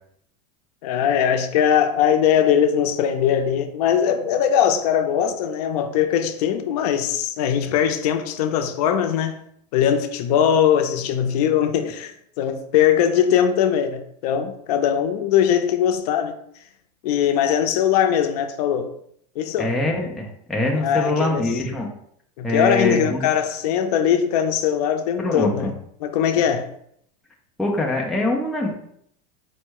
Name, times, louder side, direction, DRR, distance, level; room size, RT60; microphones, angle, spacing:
voice 1, 0.8-9.4 9.7-16.3 17.0-18.9 19.4-19.7 20.7-21.6 22.4-25.7 26.0-26.7, left 9 dB, 65° left, 8 dB, 0.5 m, -20 dB
voice 2, 19.6-21.9 22.4-23.3 25.2-25.7 27.6-28.7, left 2 dB, ahead, -2 dB, 0.3 m, -23 dB
4.4 x 2.1 x 4.5 m, 0.69 s
supercardioid pair, 155°, 21 cm